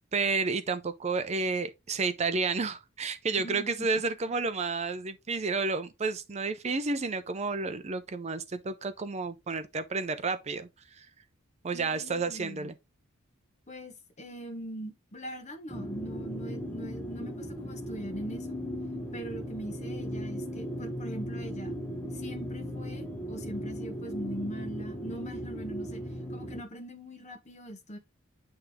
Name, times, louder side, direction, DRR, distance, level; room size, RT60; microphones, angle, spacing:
voice 1, 0.1-11.1 11.6-12.7, right 4 dB, 30° right, 0.5 m, -31 dB
voice 2, 3.4-3.9 11.7-12.7 13.7-18.5 19.1-21.7 22.1-26.0 26.3-28.0, equal, 30° left, 1.2 m, -41 dB
sound 1, 15.7-26.6, equal, 5° left, 0.9 m, -37 dB
8.7 x 3.4 x 3.6 m
head